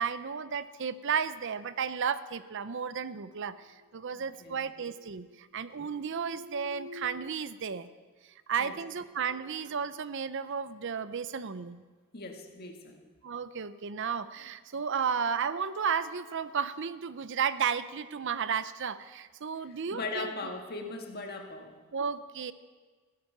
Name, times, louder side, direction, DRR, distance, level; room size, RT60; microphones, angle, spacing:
voice 1, 0.0-3.6 3.9-7.9 8.5-11.8 13.2-20.3 21.9-22.5, right 6 dB, 55° right, 14 dB, 0.6 m, -33 dB
sound 1, 3.2-4.2 4.5-5.4 5.7-7.3, left 1 dB, 30° right, 4.5 m, -49 dB
voice 2, 4.1-4.6 8.6-8.8 12.1-13.1 19.7-21.8, left 3 dB, 45° left, 3 dB, 1.8 m, -39 dB
15.5 x 12.0 x 6.7 m, 1.4 s
head